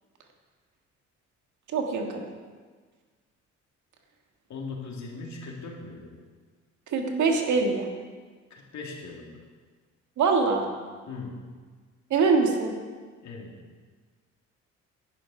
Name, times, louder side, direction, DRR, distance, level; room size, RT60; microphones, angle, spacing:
voice 1, 1.7-2.2 6.9-7.9 10.2-10.7 12.1-12.7, right 4 dB, 75° right, 3 dB, 1.8 m, -23 dB
voice 2, 4.5-6.1 8.5-9.4 11.1-11.5 13.2-13.6, left 4 dB, 65° left, 0 dB, 2.6 m, -39 dB
11.0 x 10.0 x 5.0 m, 1.5 s
cardioid pair, 90°, 30 cm